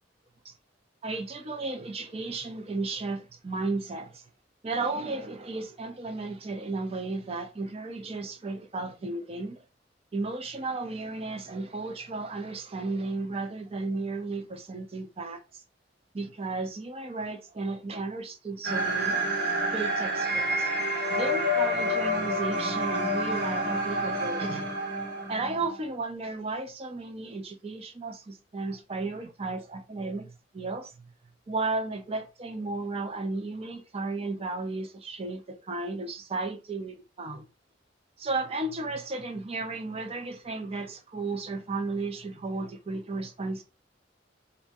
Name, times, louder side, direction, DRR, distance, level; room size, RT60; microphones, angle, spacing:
voice 1, 1.0-4.2 4.6-9.6 10.1-15.6 16.1-19.2 19.7-20.7 21.1-24.8 25.3-31.1 31.5-37.4 38.2-43.6, right 3 dB, 35° right, 0.6 m, -34 dB
sound 1, 18.6-25.8, equal, 60° right, 1.3 m, -28 dB
4.1 x 2.3 x 2.6 m
head